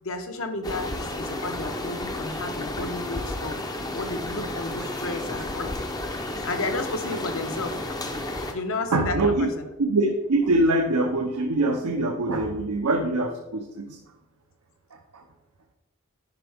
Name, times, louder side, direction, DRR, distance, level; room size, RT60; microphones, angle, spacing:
voice 1, 0.0-5.7 6.4-7.8 8.5-9.5, left 2 dB, 60° left, 6 dB, 0.8 m, -32 dB
sound 1, 0.6-8.5, left 1 dB, 15° left, 0.5 m, -32 dB
voice 2, 8.9-9.5 9.8-14.0 14.9-15.2, right 2 dB, 85° right, 3 dB, 0.7 m, -24 dB
10.5 x 4.7 x 3.4 m, 0.98 s
head